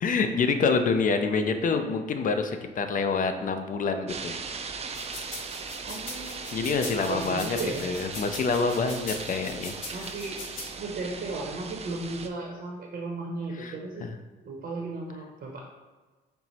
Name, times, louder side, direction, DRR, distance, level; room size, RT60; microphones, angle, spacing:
voice 1, 0.0-4.4 6.5-7.6 7.8-9.7 13.6-13.8 14.0-14.1, left 4 dB, 45° left, 7 dB, 0.4 m, -26 dB
sound 1, 4.1-12.3, right 5 dB, 30° right, 0.3 m, -39 dB
sound 2, 4.9-10.7, left 3 dB, 90° left, 1.1 m, -40 dB
voice 2, 5.8-6.4 7.1-7.9 8.7-9.0 9.9-10.4 10.8-14.1 14.4-15.6, right 3 dB, 55° right, -1 dB, 0.7 m, -35 dB
4.4 x 2.0 x 4.0 m, 1.3 s
cardioid pair, 90°, 20 cm